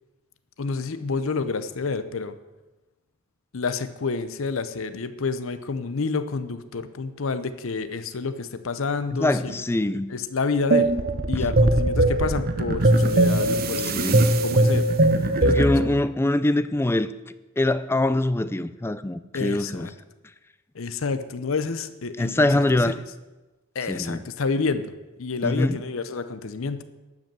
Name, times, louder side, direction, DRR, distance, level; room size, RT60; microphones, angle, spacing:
voice 1, 0.6-2.3 3.5-9.6 10.1-10.9 11.3-14.0 14.4-14.9 15.4-16.0 19.3-19.9 20.7-22.8 23.7-24.9 25.2-26.8, left 4 dB, 65° left, 11 dB, 0.7 m, -29 dB
voice 2, 9.2-10.1 13.8-14.3 15.5-17.1 17.6-19.9 22.2-22.9 23.9-24.2 25.4-25.8, left 1 dB, 10° left, 14 dB, 0.4 m, -23 dB
sound 1, 10.7-15.9, right 2 dB, 45° right, 0.8 m, -20 dB
12.0 x 5.3 x 7.5 m, 1.1 s
head